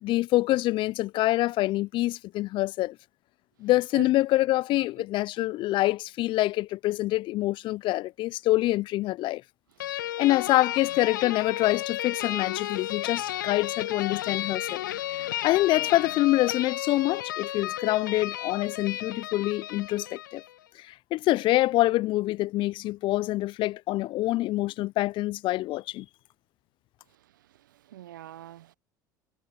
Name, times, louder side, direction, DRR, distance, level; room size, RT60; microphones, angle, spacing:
voice 1, 0.0-3.0 3.6-9.4 10.2-14.8 15.4-20.4 20.9-26.1, left 17 dB, 50° left, 0.5 m, -26 dB
sound 1, 9.8-20.5, left 13 dB, 80° left, 1.2 m, -33 dB
voice 2, 9.8-10.2 27.1-28.7, right 12 dB, 80° right, 0.9 m, -45 dB
hypercardioid pair, 70°, 10 cm